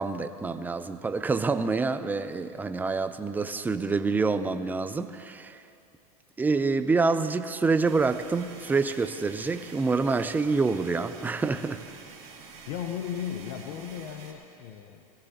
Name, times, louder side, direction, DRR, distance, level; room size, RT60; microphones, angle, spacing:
voice 1, 0.0-5.6 6.4-11.8, right 4 dB, 10° right, 10 dB, 0.5 m, -27 dB
sound 1, 7.8-14.3, right 5 dB, 35° right, 2.5 m, -47 dB
voice 2, 12.7-15.0, left 9 dB, 60° left, 6 dB, 0.9 m, -36 dB
20.5 x 17.0 x 2.9 m, 2.6 s
hypercardioid pair, 120°, 19 cm